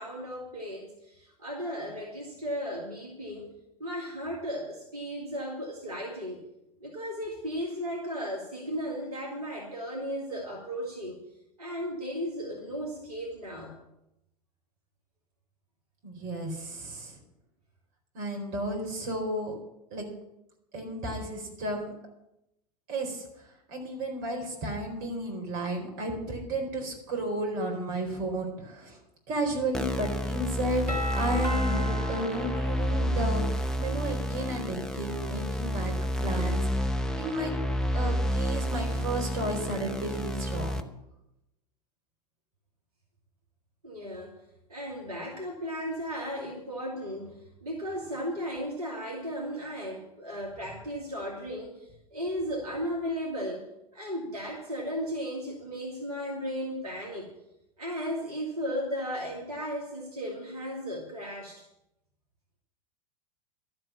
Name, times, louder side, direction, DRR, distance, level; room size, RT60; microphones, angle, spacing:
voice 1, 0.0-3.5 3.8-6.5 6.8-11.2 11.6-13.8 43.8-44.4 44.7-57.3 57.8-61.6, equal, 70° right, -1 dB, 2.5 m, -35 dB
voice 2, 16.0-17.2 18.1-19.5 19.9-20.1 20.7-21.9 22.9-23.3 23.7-29.0 29.3-36.6 37.2-37.5 37.9-40.8, right 1 dB, 40° right, 1 dB, 4.4 m, -33 dB
sound 1, 29.7-40.8, equal, 5° left, 0.8 m, -30 dB
Doorbell, 30.9-33.7, right 1 dB, 90° left, 2.6 m, -37 dB
12.0 x 7.8 x 8.6 m, 0.86 s
figure-of-eight pair, 90°, 20 cm